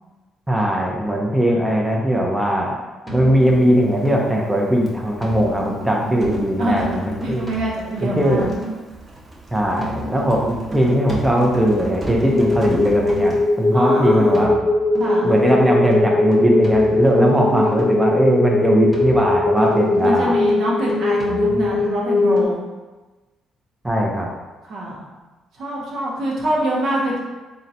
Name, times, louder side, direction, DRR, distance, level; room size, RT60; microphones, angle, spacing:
voice 1, 0.5-2.8 3.1-7.5 8.0-8.4 9.5-14.6 15.2-20.4 23.8-24.3, equal, 10° right, -2 dB, 0.5 m, -19 dB
sound 1, 3.0-4.5 5.2-9.0 9.8-13.5 14.3-18.2 18.9-21.9 22.4-22.5, right 1 dB, 20° left, 0.7 m, -33 dB
Typing, 3.4-14.4, right 2 dB, 30° right, 0.8 m, -38 dB
voice 2, 6.6-8.5 13.7-14.5 15.0-15.3 17.2-17.8 20.0-22.6 24.7-25.0 25.5-27.2, right 1 dB, 65° right, -4 dB, 0.8 m, -25 dB
sound 2, 12.3-22.4, left 2 dB, 50° left, 0.4 m, -19 dB
3.7 x 2.1 x 2.7 m, 1.2 s
supercardioid pair, 70°, 0 cm